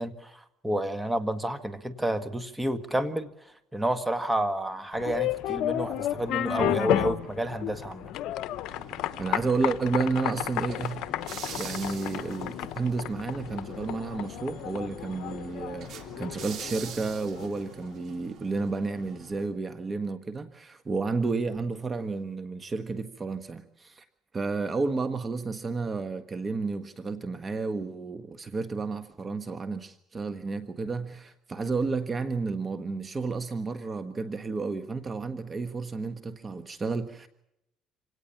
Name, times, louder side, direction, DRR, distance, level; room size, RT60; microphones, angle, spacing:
voice 1, 0.0-3.3 3.7-8.1, right 1 dB, 10° right, 1.7 m, -30 dB
sound 1, 4.9-17.7, left 13 dB, 70° left, 0.9 m, -32 dB
sound 2, 8.7-19.5, right 7 dB, 55° right, 3.3 m, -46 dB
voice 2, 9.2-11.0 11.5-24.1 24.3-37.3, right 4 dB, 25° right, 1.4 m, -31 dB
26.5 x 18.0 x 7.2 m
cardioid pair, 110°, 0 cm